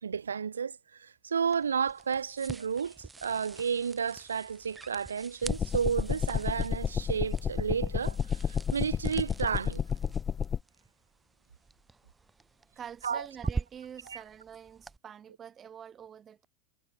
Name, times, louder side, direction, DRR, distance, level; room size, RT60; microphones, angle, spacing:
voice 1, 0.0-8.2 8.5-9.8 13.0-13.3 14.1-14.2, right 6 dB, 85° right, 1.9 m, -32 dB
sound 1, 1.4-15.0, right 3 dB, 15° right, 2.2 m, -45 dB
sound 2, 5.4-10.6, left 7 dB, 25° left, 1.3 m, -31 dB
voice 2, 12.7-16.5, right 8 dB, 30° right, 4.6 m, -46 dB
hypercardioid pair, 95°, 0 cm